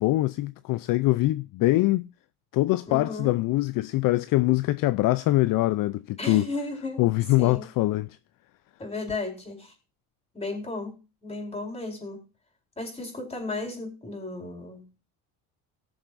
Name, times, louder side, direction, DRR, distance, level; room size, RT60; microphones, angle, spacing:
voice 1, 0.0-2.1 2.5-6.5 7.0-8.2, left 18 dB, 55° left, 0.5 m, -23 dB
voice 2, 2.9-3.3 6.2-7.0 7.4-7.7 8.8-9.7 10.3-12.2 12.8-15.1, left 2 dB, 15° left, 4.4 m, -34 dB
19.0 x 7.2 x 2.6 m
cardioid pair, 110°, 41 cm